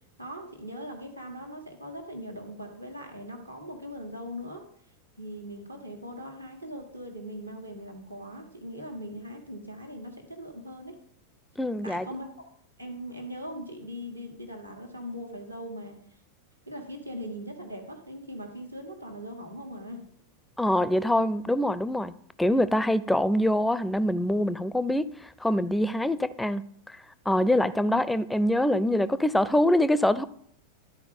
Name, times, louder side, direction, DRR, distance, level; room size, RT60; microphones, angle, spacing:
voice 1, 0.2-4.7 5.2-11.0 11.8-12.5 12.8-16.0 16.7-20.1 27.8-28.0, equal, 85° right, 1.5 m, -40 dB
voice 2, 11.6-12.1 20.6-22.1 22.4-25.1 25.4-26.6 27.3-30.2, left 1 dB, 5° left, 0.4 m, -24 dB
12.0 x 4.6 x 5.3 m
figure-of-eight pair, 90°, 0 cm